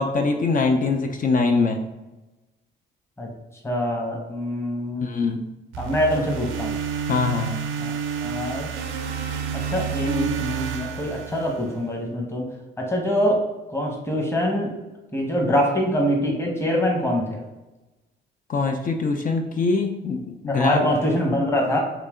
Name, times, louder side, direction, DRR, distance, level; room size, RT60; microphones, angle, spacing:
voice 1, 0.0-1.8 5.0-5.4 7.1-7.5 18.5-20.8, left 4 dB, 45° left, 5 dB, 0.4 m, -23 dB
voice 2, 3.6-5.1 5.8-6.8 7.8-7.9 8.2-8.7 9.5-12.5 12.8-13.4 13.7-14.7 15.1-17.4 20.5-21.8, equal, 15° left, 0 dB, 1.0 m, -24 dB
sound 1, 5.7-11.9, right 7 dB, 90° right, 0.5 m, -29 dB
3.2 x 2.8 x 3.6 m, 1.1 s
cardioid pair, 90°, 20 cm